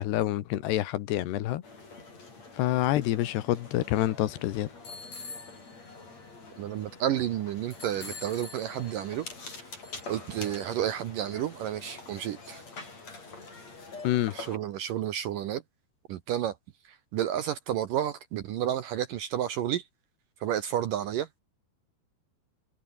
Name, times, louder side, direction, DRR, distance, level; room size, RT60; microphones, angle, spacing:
voice 1, 0.0-1.6 2.6-4.7 14.0-14.3, left 14 dB, 75° left, 3.3 m, -27 dB
sound 1, 1.6-14.6, left 3 dB, 40° left, 7.9 m, -45 dB
voice 2, 6.6-9.3 10.1-12.6 14.3-15.6 16.1-16.6 16.9-19.8 20.4-21.3, right 11 dB, 70° right, 2.2 m, -31 dB
omnidirectional pair, 5.0 m